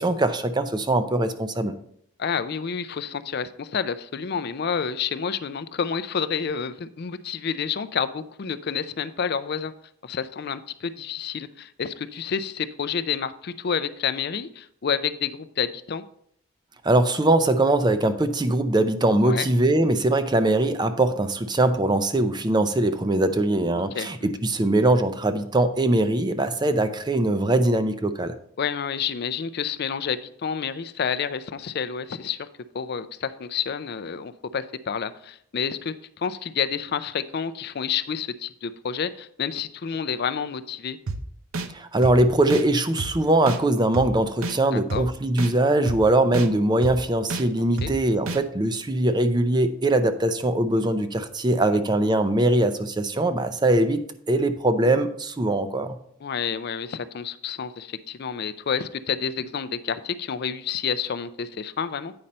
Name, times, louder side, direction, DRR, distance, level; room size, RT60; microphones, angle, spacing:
voice 1, 0.0-1.7 16.8-28.3 41.7-56.0, right 2 dB, 20° right, 10 dB, 0.5 m, -22 dB
voice 2, 2.2-9.7 10.0-16.0 19.2-19.5 23.7-24.3 28.6-32.5 32.7-41.0 44.7-45.1 47.8-47.9 56.2-62.1, left 7 dB, 50° left, 13 dB, 0.4 m, -29 dB
sound 1, 41.1-41.2 41.5-41.7 42.0-42.2 42.5-42.6 43.0-43.1 43.5-43.6 43.9-44.1 44.4-44.6 44.9-45.0 45.4-45.5 45.9-46.0 46.3-46.5 46.8-47.0 47.3-47.4 47.8-47.9 48.3-48.4, right 3 dB, 85° right, 0.7 m, -29 dB
8.7 x 5.4 x 4.2 m, 0.69 s
head